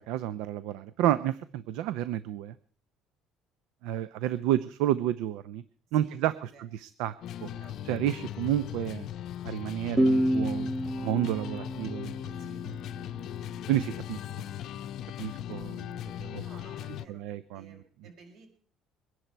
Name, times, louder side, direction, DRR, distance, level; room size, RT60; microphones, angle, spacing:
voice 1, 0.0-2.5 3.8-5.6 5.9-7.1 7.4-7.5 7.8-9.1 9.4-10.7 11.0-12.1 12.7-12.8 13.7-14.2 15.2-16.4 17.1-17.8, right 12 dB, 90° right, 15 dB, 0.7 m, -30 dB
sound 1, 7.2-17.1, left 11 dB, 55° left, 0.6 m, -39 dB
voice 2, 7.5-7.8 12.3-12.6 16.3-18.5, right 3 dB, 60° right, 3 dB, 5.2 m, -54 dB
sound 2, 10.0-13.4, equal, 15° right, 0.6 m, -29 dB
23.0 x 11.0 x 4.6 m, 0.44 s
cardioid pair, 150°, 0 cm